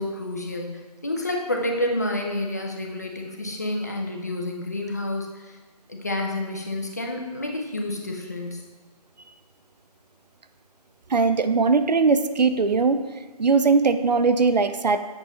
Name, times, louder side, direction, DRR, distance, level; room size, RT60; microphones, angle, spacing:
voice 1, 0.0-5.5 5.9-8.6, left 1 dB, 25° left, 1 dB, 0.5 m, -29 dB
voice 2, 11.1-13.0 13.4-15.0, right 4 dB, 90° right, 10 dB, 0.5 m, -20 dB
7.9 x 5.4 x 2.9 m, 1.3 s
figure-of-eight pair, 165°, 21 cm